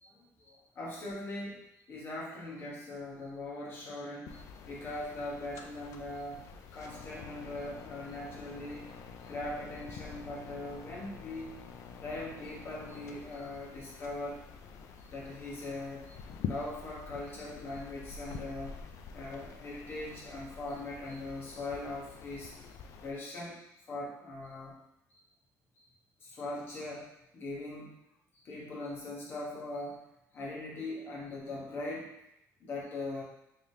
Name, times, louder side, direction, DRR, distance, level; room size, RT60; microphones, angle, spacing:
voice 1, 0.0-6.5 6.7-8.9 9.2-11.5 11.9-14.4 15.0-16.2 16.4-18.8 19.1-22.5 23.0-24.8 25.1-25.2 26.2-27.9 28.3-30.0 30.3-32.1 32.6-33.2, left 2 dB, 40° left, -4 dB, 1.1 m, -41 dB
sound 1, 4.3-23.1, left 6 dB, 60° left, 0.4 m, -47 dB
3.6 x 3.3 x 2.7 m, 0.81 s
cardioid pair, 150°, 6 cm